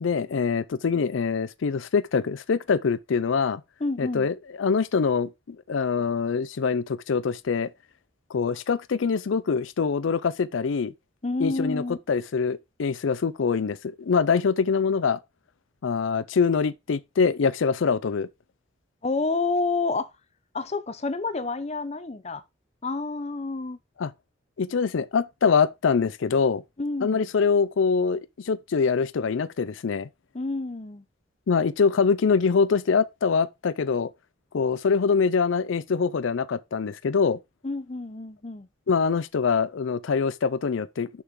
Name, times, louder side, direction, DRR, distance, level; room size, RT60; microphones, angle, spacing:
voice 1, 0.0-3.6 4.0-7.7 8.3-10.9 11.4-15.2 15.8-18.3 24.0-24.1 24.6-26.6 27.0-30.1 31.5-34.1 34.5-37.4 38.9-41.1, left 5 dB, 75° left, 0.5 m, -24 dB
voice 2, 3.8-4.3 11.2-12.0 19.0-20.1 20.5-22.4 22.8-23.8 26.8-27.3 30.3-31.0 37.6-38.7, left 3 dB, 35° left, 0.7 m, -29 dB
6.6 x 6.1 x 3.7 m
head